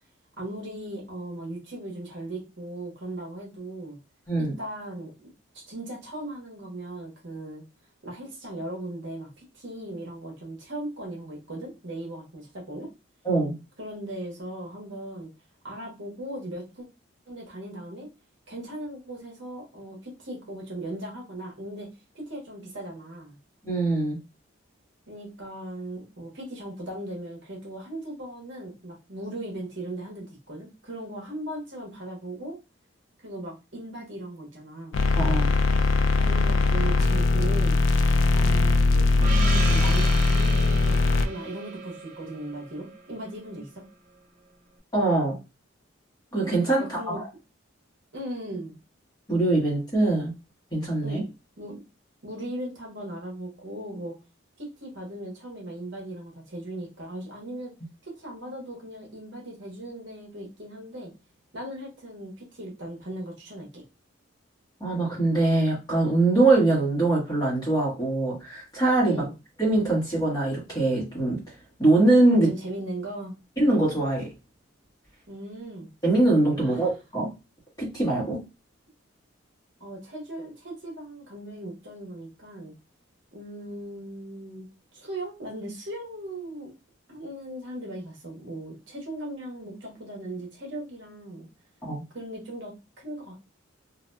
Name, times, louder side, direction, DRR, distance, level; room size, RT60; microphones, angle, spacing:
voice 1, 0.4-4.0 4.4-5.1 5.5-7.6 8.0-12.9 13.8-15.3 15.6-16.9 17.3-18.1 18.5-21.9 22.1-23.4 25.1-32.6 33.2-35.0 36.2-37.8 38.3-43.8 46.8-47.2 48.1-48.8 51.0-51.3 51.6-51.8 52.2-54.1 54.6-57.7 58.1-61.1 61.5-63.8 69.0-69.3 72.4-73.4 75.3-75.9 76.6-76.8 79.8-82.7 83.3-84.7 84.9-86.7 87.1-91.5 92.1-93.4, right 1 dB, 60° right, -1 dB, 1.0 m, -38 dB
voice 2, 23.6-24.2 35.1-35.5 44.9-45.4 46.3-47.3 49.3-50.3 50.7-51.2 64.8-69.2 69.6-71.4 71.8-72.5 73.6-74.3 76.0-77.3 77.8-78.4 91.8-92.0, right 2 dB, 20° left, -4 dB, 1.2 m, -23 dB
sound 1, 34.9-41.3, left 3 dB, 65° left, 0.3 m, -21 dB
Gong, 39.2-43.5, right 4 dB, 35° right, 0.5 m, -35 dB
2.6 x 2.5 x 2.2 m, 0.27 s
head